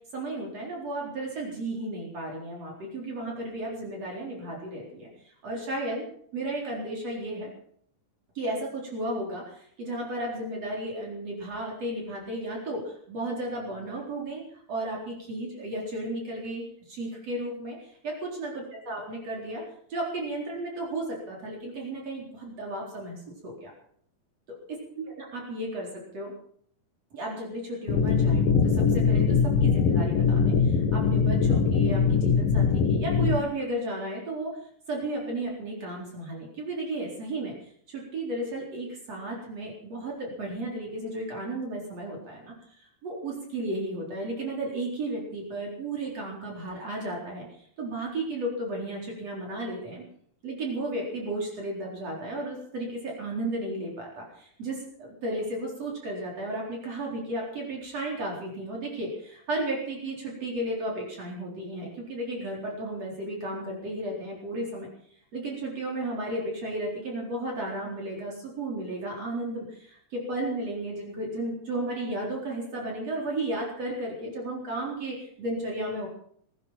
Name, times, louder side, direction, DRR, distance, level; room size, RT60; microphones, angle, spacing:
voice 1, 0.1-6.0 6.3-7.5 8.3-19.6 19.9-23.7 24.5-25.9 26.1-26.3 27.1-50.0 50.4-64.9 65.3-76.1, right 1 dB, 45° right, -2 dB, 5.1 m, -34 dB
sound 1, 27.9-33.4, left 5 dB, 80° left, 3.4 m, -22 dB
21.5 x 11.0 x 5.9 m, 0.63 s
omnidirectional pair, 4.1 m